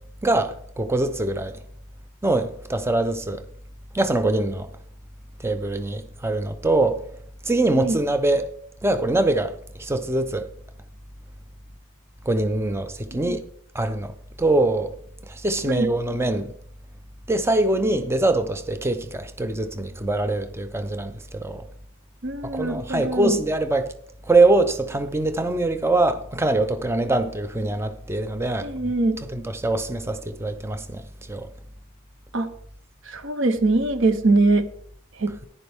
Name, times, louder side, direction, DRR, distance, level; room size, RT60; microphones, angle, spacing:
voice 1, 0.2-1.6 2.2-3.4 3.9-4.7 5.4-7.0 7.4-8.5 8.8-9.5 9.8-10.5 12.3-13.4 13.7-14.1 14.4-14.9 15.3-16.5 17.3-21.7 22.5-23.9 24.3-28.7 29.3-31.0 31.3-31.5, right 2 dB, 10° right, 0.5 m, -23 dB
voice 2, 22.2-23.4 28.6-29.2 32.3-32.5 33.1-34.7 35.2-35.3, right 2 dB, 55° right, 0.9 m, -22 dB
10.5 x 10.0 x 3.5 m
head